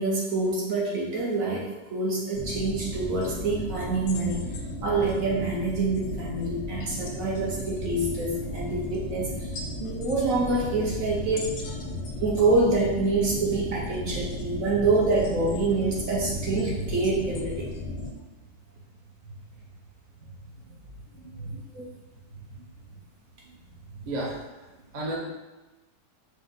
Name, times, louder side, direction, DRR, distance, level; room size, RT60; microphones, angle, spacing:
voice 1, 0.0-4.4 4.8-9.5 9.8-11.9 12.2-17.6 21.4-21.9, right 3 dB, 60° right, -3 dB, 0.9 m, -26 dB
sound 1, 2.3-18.1, left 2 dB, 85° left, 1.3 m, -35 dB
voice 2, 24.0-25.2, right 1 dB, 45° right, -4 dB, 0.5 m, -34 dB
5.1 x 2.1 x 3.8 m, 1.1 s
omnidirectional pair, 1.9 m